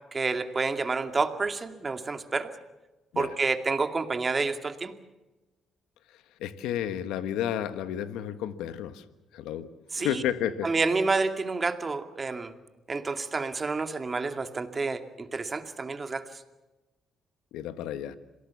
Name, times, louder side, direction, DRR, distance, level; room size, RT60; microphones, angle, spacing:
voice 1, 0.1-2.5 3.2-4.9 9.9-10.2 10.6-12.5 12.9-16.3, right 4 dB, 35° right, 8 dB, 2.3 m, -29 dB
voice 2, 6.4-9.0 9.3-10.7 17.5-18.1, left 10 dB, 85° left, 12 dB, 1.3 m, -32 dB
27.0 x 18.5 x 7.2 m, 1.1 s
supercardioid pair, 60°, 0 cm